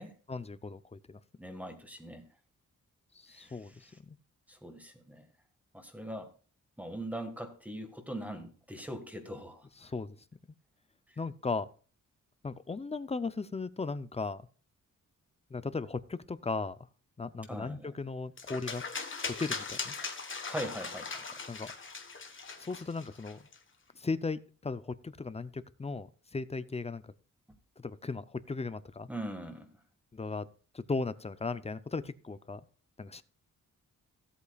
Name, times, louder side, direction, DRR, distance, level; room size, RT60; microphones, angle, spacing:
voice 1, 0.3-1.2 3.2-4.2 9.8-10.2 11.2-11.7 12.4-14.4 15.5-16.8 17.2-18.8 19.4-19.9 21.5-21.7 22.6-23.4 24.0-27.1 27.8-29.1 30.1-30.5 30.7-32.6 33.0-33.2, left 4 dB, 20° left, 14 dB, 0.5 m, -37 dB
voice 2, 1.4-2.2 3.3-4.0 4.5-5.3 5.7-6.3 6.8-9.7 11.1-11.2 17.5-18.0 20.5-21.3 29.1-29.7, right 1 dB, 5° right, 5 dB, 1.6 m, -41 dB
sound 1, 18.4-23.6, left 4 dB, 35° left, 1.3 m, -39 dB
16.0 x 8.3 x 2.3 m, 0.39 s
wide cardioid pair, 135°, 33 cm